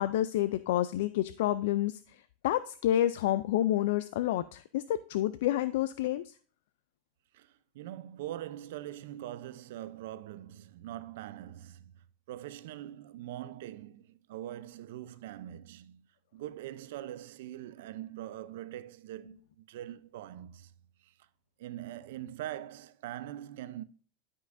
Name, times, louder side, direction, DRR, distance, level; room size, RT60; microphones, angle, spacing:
voice 1, 0.0-2.0 2.4-6.3, left 13 dB, 75° left, 0.3 m, -29 dB
voice 2, 7.3-16.1 16.3-20.7 21.0-21.1 21.6-23.8, right 13 dB, 75° right, 0.5 m, -43 dB
12.5 x 5.4 x 2.5 m
supercardioid pair, 145°, 0 cm